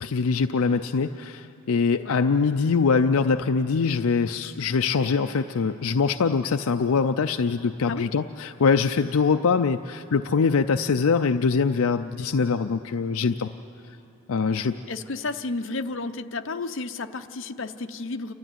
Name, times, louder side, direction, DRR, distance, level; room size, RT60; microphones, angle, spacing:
voice 1, 0.0-13.5 13.9-14.0 14.3-14.8, left 5 dB, 80° left, 7 dB, 0.5 m, -23 dB
voice 2, 14.9-18.3, left 3 dB, 60° left, 7 dB, 0.8 m, -32 dB
29.0 x 12.5 x 9.2 m, 2.9 s
head